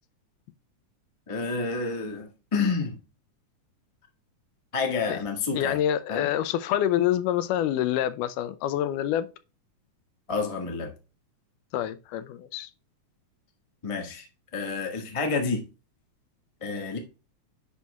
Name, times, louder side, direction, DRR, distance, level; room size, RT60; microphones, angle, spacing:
voice 1, 1.3-3.0 4.7-5.8 6.1-6.3 10.3-10.9 13.8-14.3 14.5-15.6 16.6-17.0, left 4 dB, 50° left, 0.3 m, -29 dB
voice 2, 5.5-9.3 11.7-12.7, left 11 dB, 90° left, 2.2 m, -26 dB
10.5 x 4.2 x 2.3 m
omnidirectional pair, 3.6 m